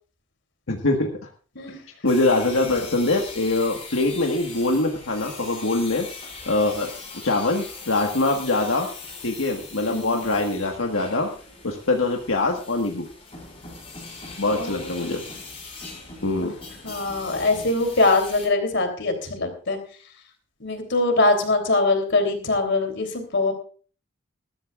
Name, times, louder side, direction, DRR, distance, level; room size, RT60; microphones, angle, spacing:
voice 1, 0.7-1.3 2.0-6.1 6.5-6.9 7.2-8.9 9.2-11.3 11.6-13.1 14.4-15.2 16.2-16.5, left 2 dB, 90° left, 1 dB, 1.6 m, -23 dB
sound 1, 2.1-18.5, left 4 dB, 30° left, 5.7 m, -40 dB
voice 2, 9.9-10.2 14.6-15.2 16.4-16.5 16.8-19.8 20.6-23.5, left 2 dB, 65° left, 5 dB, 3.4 m, -23 dB
21.0 x 13.0 x 2.5 m, 0.39 s
head